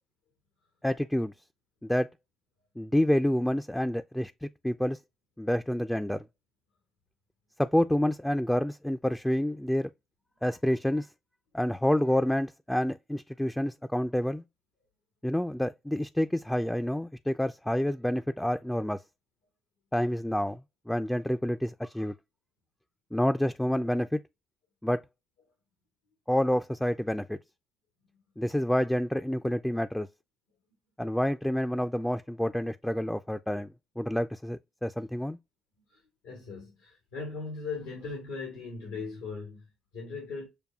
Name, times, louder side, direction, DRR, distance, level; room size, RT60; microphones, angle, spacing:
voice 1, 0.8-1.3 1.8-2.1 2.8-5.0 5.4-6.3 7.6-9.9 10.4-11.1 11.5-14.4 15.2-19.0 19.9-20.6 20.9-22.1 23.1-24.2 24.8-25.0 26.3-27.4 28.4-30.1 31.0-33.7 34.0-35.4, left 1 dB, 5° left, 0.3 m, -28 dB
voice 2, 35.9-40.5, left 4 dB, 90° left, 1.1 m, -39 dB
6.8 x 2.3 x 2.3 m
hypercardioid pair, 55°, 0 cm